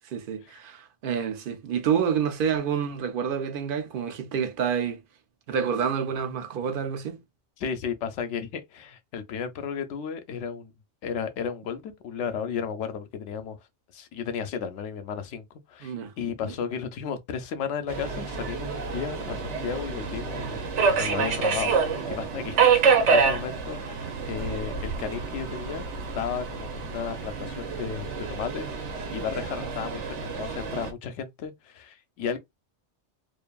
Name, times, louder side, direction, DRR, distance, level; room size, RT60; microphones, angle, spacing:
voice 1, 0.1-5.0 5.5-7.2 15.8-16.1 16.4-16.5, right 7 dB, 60° right, 0.7 m, -28 dB
voice 2, 7.6-10.7 11.0-13.6 13.9-28.7 29.1-32.4, left 7 dB, 85° left, 0.9 m, -34 dB
Subway metro underground, 17.9-30.9, right 5 dB, 85° right, 1.1 m, -27 dB
2.6 x 2.5 x 2.2 m
omnidirectional pair, 1.2 m